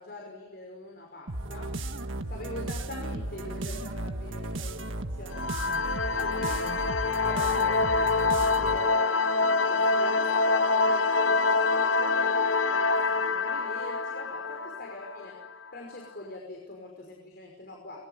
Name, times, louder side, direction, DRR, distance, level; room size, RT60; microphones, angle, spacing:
voice 1, 0.0-1.8 2.2-5.5 6.1-6.7 7.1-15.4 15.7-18.0, left 2 dB, 55° left, 1 dB, 5.6 m, -43 dB
sound 1, 1.3-9.0, right 2 dB, 85° right, 1.6 m, -35 dB
sound 2, 5.3-15.7, left 3 dB, 75° left, 1.0 m, -26 dB
26.5 x 22.5 x 8.2 m, 1.0 s
head